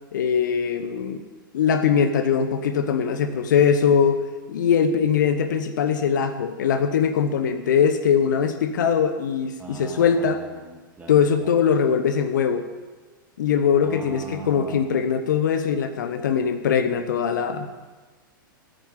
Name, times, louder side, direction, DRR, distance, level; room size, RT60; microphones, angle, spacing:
voice 1, 0.1-1.2 1.5-4.2 4.5-10.4 11.1-12.6 13.4-17.7, left 7 dB, 60° left, 9 dB, 1.0 m, -21 dB
voice 2, 9.6-11.5 13.7-14.9, right 3 dB, 15° right, 0 dB, 2.5 m, -39 dB
14.0 x 9.0 x 7.3 m, 1.3 s
figure-of-eight pair, 100°, 11 cm